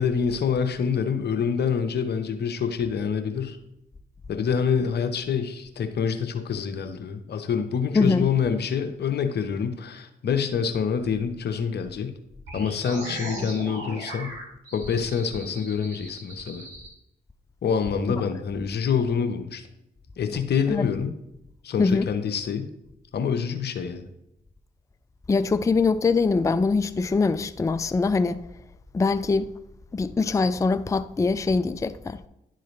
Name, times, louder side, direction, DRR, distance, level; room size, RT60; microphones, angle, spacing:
voice 1, 0.0-3.6 4.3-12.1 12.5-14.4 14.7-16.7 17.6-19.7 20.2-21.1 21.6-22.7 23.1-24.0, left 6 dB, 60° left, 0.9 m, -26 dB
voice 2, 8.0-8.3 20.7-20.9 21.8-22.1 25.3-28.4 28.9-29.5 29.9-32.2, left 4 dB, 15° left, 0.4 m, -23 dB
sound 1, 12.5-16.9, right 1 dB, 85° right, 1.4 m, -38 dB
11.0 x 3.8 x 3.2 m
hypercardioid pair, 45°, 19 cm